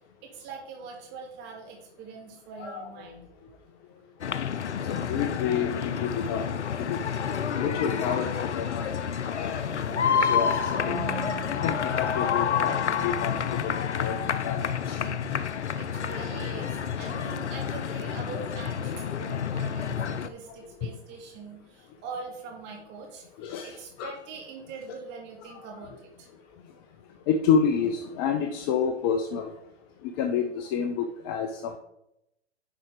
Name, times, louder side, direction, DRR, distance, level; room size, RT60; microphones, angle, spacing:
voice 1, 0.2-3.3 14.4-14.6 15.7-23.3 23.6-26.3, right 5 dB, 30° right, 0 dB, 2.7 m, -42 dB
voice 2, 2.6-2.9 4.8-5.7 6.0-6.5 6.8-7.0 7.6-9.0 9.4-11.0 11.5-12.8 13.0-15.1 16.1-16.3 17.0-17.1 20.8-20.9 23.4-24.1 27.3-29.5 30.0-31.8, left 7 dB, 20° left, 6 dB, 0.4 m, -29 dB
sound 1, 4.2-20.3, left 7 dB, 85° left, 0.7 m, -29 dB
sound 2, 9.7-19.9 20.5-20.8, right 4 dB, 75° right, 3.1 m, -45 dB
10.0 x 4.2 x 5.0 m, 0.84 s
hypercardioid pair, 125°, 34 cm